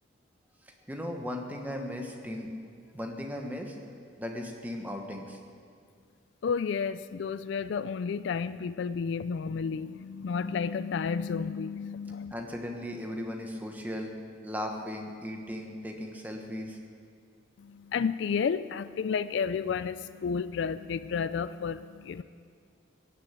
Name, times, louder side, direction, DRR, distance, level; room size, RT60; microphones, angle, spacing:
voice 1, 0.6-2.5 2.9-3.8 4.2-5.4 12.3-14.1 14.4-16.8, left 1 dB, 10° right, 2 dB, 1.2 m, -37 dB
voice 2, 6.4-12.3 17.9-22.2, left 6 dB, 60° left, 14 dB, 0.3 m, -31 dB
16.0 x 6.8 x 9.0 m, 2.2 s
head